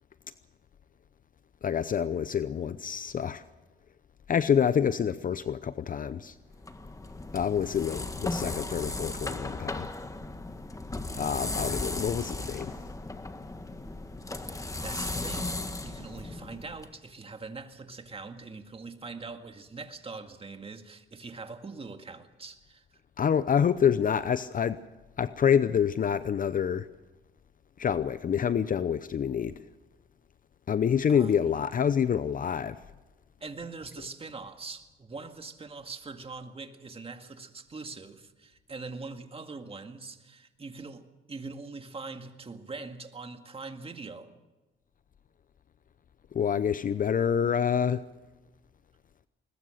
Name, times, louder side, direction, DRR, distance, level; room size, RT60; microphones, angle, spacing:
voice 1, 1.6-3.4 4.3-6.3 7.3-9.9 11.2-12.7 23.2-24.8 25.2-26.9 27.8-29.5 30.7-32.8 46.3-48.0, left 8 dB, 45° left, 0.7 m, -27 dB
sound 1, 6.5-16.9, left 2 dB, 15° left, 1.7 m, -36 dB
voice 2, 14.4-23.0 31.1-31.5 33.4-44.4, right 4 dB, 30° right, 2.0 m, -43 dB
21.0 x 20.5 x 6.5 m
cardioid pair, 90°, 20 cm